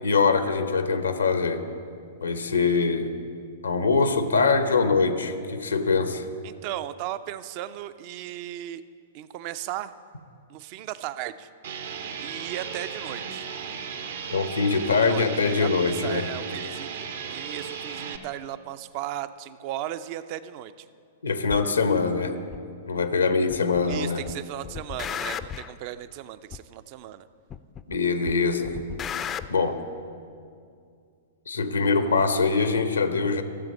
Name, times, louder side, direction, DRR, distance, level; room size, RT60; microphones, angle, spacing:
voice 1, 0.0-1.6 2.2-3.1 3.6-6.3 14.3-16.3 21.2-22.4 22.9-24.2 27.9-28.8 29.5-29.8 31.5-33.4, left 4 dB, 85° left, 9 dB, 0.8 m, -23 dB
voice 2, 6.4-8.8 9.1-9.9 10.5-11.5 12.2-13.5 14.9-20.9 23.9-27.3, right 12 dB, 45° right, 14 dB, 0.4 m, -36 dB
sound 1, 11.6-18.2, right 6 dB, 65° right, 0.8 m, -36 dB
sound 2, 21.5-21.6 22.5-22.6 23.5-24.0 24.3-25.7 26.5-26.6 27.5-28.0 28.3-29.5, left 9 dB, 25° left, 0.4 m, -34 dB
13.5 x 7.5 x 5.3 m, 2.3 s
hypercardioid pair, 110°, 0 cm